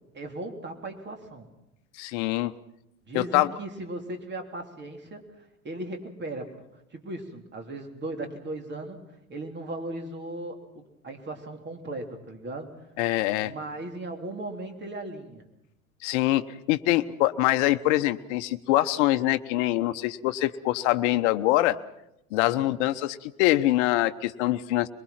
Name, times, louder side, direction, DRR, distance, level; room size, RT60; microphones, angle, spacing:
voice 1, 0.1-1.5 3.1-6.5 6.9-12.7 13.4-15.5 22.4-22.7, right 2 dB, 25° right, 4 dB, 3.4 m, -37 dB
voice 2, 1.9-2.5 3.1-3.5 13.0-13.5 16.0-16.4 16.7-21.8 22.3-24.9, left 16 dB, 55° left, 11 dB, 1.1 m, -24 dB
23.0 x 22.5 x 5.9 m, 0.87 s
figure-of-eight pair, 80°, 41 cm